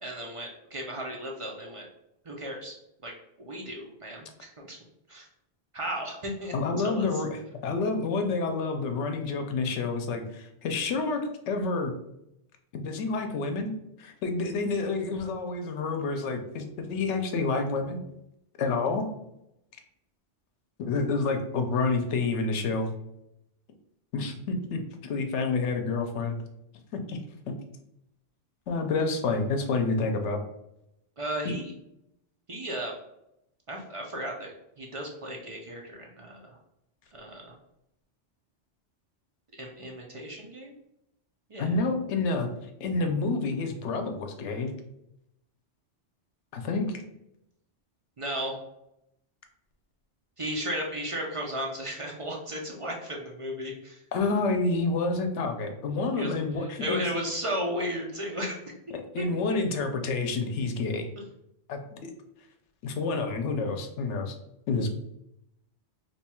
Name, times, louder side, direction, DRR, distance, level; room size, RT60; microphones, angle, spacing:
voice 1, 0.0-1.9 2.2-2.8 3.0-3.1 3.4-4.8 5.1-5.3 5.7-7.1 31.2-31.7 32.5-32.9 33.7-36.6 37.1-37.5 39.5-40.8 41.5-41.7 48.2-48.5 50.4-54.0 56.2-56.3 56.6-58.6 59.2-59.6, equal, 45° right, 0 dB, 0.4 m, -35 dB
voice 2, 6.5-11.9 12.7-13.7 14.0-18.0 18.6-19.1 20.8-22.9 24.1-26.4 26.9-27.2 27.5-27.6 28.7-30.4 31.4-31.5 41.6-42.5 42.8-44.7 46.5-47.0 54.1-57.1 59.1-61.1 61.7-62.1 62.8-64.4 64.7-64.9, left 3 dB, 80° left, 6 dB, 0.9 m, -28 dB
2.9 x 2.3 x 4.2 m, 0.81 s
omnidirectional pair, 1.2 m